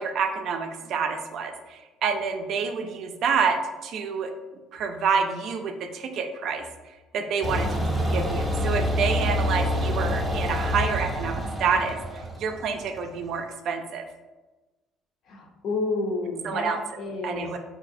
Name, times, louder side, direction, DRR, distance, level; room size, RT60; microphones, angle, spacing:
voice 1, 0.0-4.3 4.7-6.7 7.1-7.8 8.1-14.0 16.4-17.6, right 5 dB, 60° right, 6 dB, 0.4 m, -28 dB
sound 1, 7.4-13.2, equal, 10° right, 0.6 m, -27 dB
voice 2, 15.3-17.5, left 3 dB, 55° left, 3 dB, 0.6 m, -30 dB
4.0 x 2.6 x 2.6 m, 1.1 s
cardioid pair, 125°, 0 cm